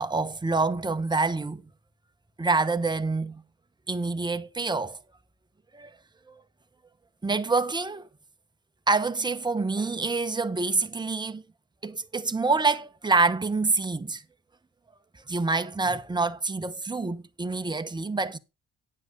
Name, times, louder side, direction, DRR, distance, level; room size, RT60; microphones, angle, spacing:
voice 1, 0.0-1.6 2.4-3.4 3.9-5.0 5.7-5.9 6.3-6.4 7.2-8.1 8.9-11.4 11.8-14.2 15.3-18.4, right 3 dB, 15° right, 0.8 m, -26 dB
9.6 x 7.6 x 3.9 m
cardioid pair, 90°, 30 cm